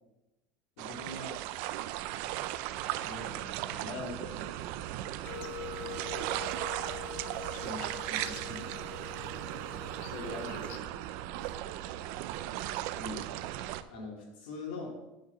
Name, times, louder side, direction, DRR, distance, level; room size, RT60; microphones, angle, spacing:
voice 1, 0.8-1.4 3.0-4.5 7.6-10.9 13.0-13.2 13.9-14.9, left 3 dB, 80° left, -2 dB, 3.7 m, -43 dB
sound 1, 0.8-13.8, right 13 dB, 45° right, 0.5 m, -37 dB
sound 2, 5.3-10.8, left 6 dB, 35° left, 0.9 m, -44 dB
voice 2, 5.6-6.3 11.3-11.6 12.5-13.1, right 8 dB, 70° right, 4 dB, 1.7 m, -54 dB
9.1 x 4.8 x 7.4 m, 0.98 s
supercardioid pair, 175°, 5 cm